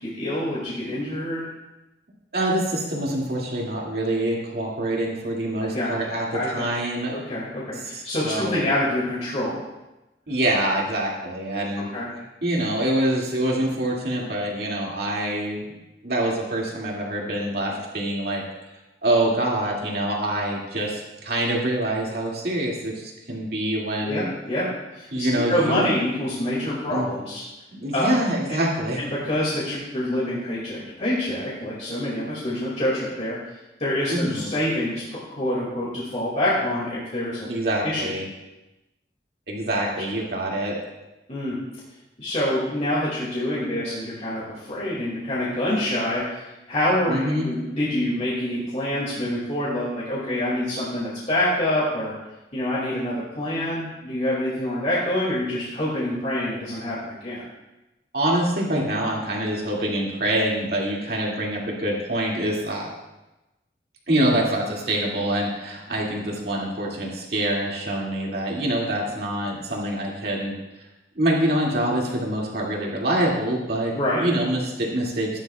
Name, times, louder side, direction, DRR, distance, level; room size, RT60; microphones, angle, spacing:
voice 1, 0.0-1.5 5.6-5.9 6.3-6.6 7.1-9.6 11.9-12.1 24.0-24.7 24.9-27.4 27.9-28.1 29.0-33.4 33.8-37.5 37.8-38.1 41.3-41.6 42.2-46.4 46.7-52.1 52.5-57.4 73.9-74.2, left 1 dB, 40° left, -7 dB, 2.3 m, -26 dB
voice 2, 2.3-6.3 6.5-7.2 7.8-8.7 10.3-11.9 12.4-15.8 16.0-18.4 19.0-24.2 25.1-25.9 26.9-27.1 27.7-29.0 34.1-34.5 37.5-38.3 39.5-40.8 47.1-47.5 58.1-62.9 64.1-70.5 71.2-75.4, right 1 dB, 60° right, -3 dB, 2.4 m, -25 dB
14.5 x 11.0 x 2.4 m, 1.0 s
head